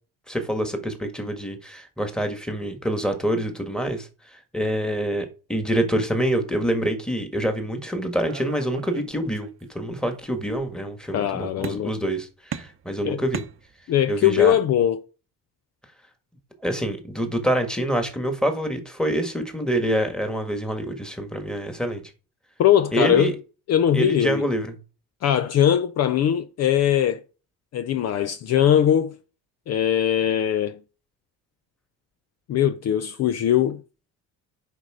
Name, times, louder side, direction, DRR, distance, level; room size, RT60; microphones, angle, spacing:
voice 1, 0.3-13.4 14.1-14.6 16.6-22.0 22.9-23.3 23.9-24.8, right 1 dB, ahead, 1.6 m, -26 dB
sound 1, 8.3-9.6 10.0-10.7 11.6-12.1 12.5-14.1, right 8 dB, 40° right, 0.8 m, -38 dB
voice 2, 11.1-11.9 13.0-13.2 13.9-15.0 22.6-23.3 23.7-24.4 25.2-27.2 27.7-29.2 29.7-30.8 32.5-33.8, left 10 dB, 45° left, 0.5 m, -20 dB
8.1 x 5.2 x 4.9 m
cardioid pair, 125°, 35 cm